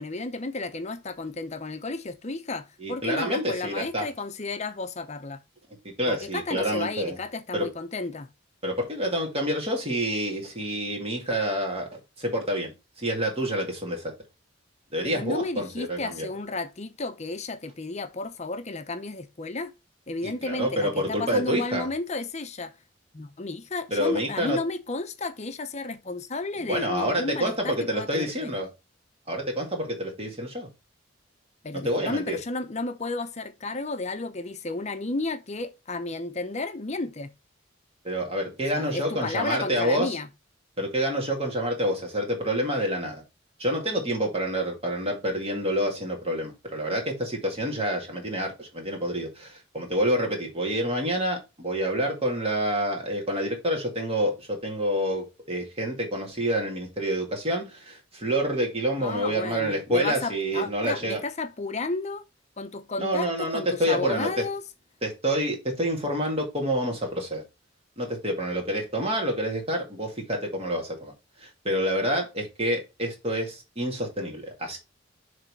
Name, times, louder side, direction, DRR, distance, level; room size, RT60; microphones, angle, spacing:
voice 1, 0.0-5.4 6.1-8.3 15.0-19.7 20.1-22.8 23.1-28.5 31.6-37.3 38.7-40.3 59.0-62.2 62.6-64.6, left 3 dB, 35° left, 0.8 m, -32 dB
voice 2, 2.8-4.1 5.8-7.2 7.5-7.7 8.6-14.1 14.9-16.3 20.2-21.9 23.9-24.6 26.6-28.7 29.3-30.7 31.7-32.4 38.0-40.2 40.8-43.2 43.6-61.2 63.0-64.5 65.0-67.4 68.0-71.1 71.4-74.8, equal, 30° right, 2.0 m, -28 dB
6.5 x 3.4 x 4.6 m
head